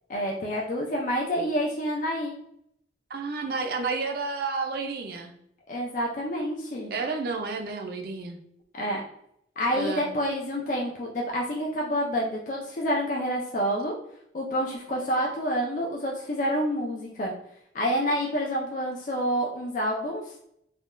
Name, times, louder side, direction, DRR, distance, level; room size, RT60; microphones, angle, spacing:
voice 1, 0.1-2.3 5.7-6.9 8.8-9.0 9.6-13.9 14.3-17.3 17.7-20.3, equal, 45° left, -2 dB, 0.4 m, -28 dB
voice 2, 3.1-5.3 6.9-8.4 9.7-10.1, right 4 dB, 55° right, 4 dB, 0.4 m, -31 dB
3.5 x 2.2 x 2.5 m, 0.74 s
head